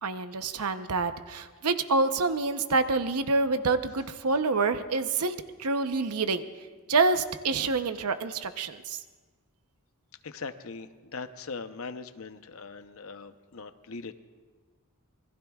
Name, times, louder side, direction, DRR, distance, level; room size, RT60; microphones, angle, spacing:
voice 1, 0.0-6.4 6.9-9.0, right 3 dB, 90° right, 9 dB, 0.8 m, -27 dB
voice 2, 10.2-14.1, left 4 dB, 65° left, 9 dB, 0.8 m, -40 dB
27.0 x 21.0 x 2.4 m, 1.4 s
head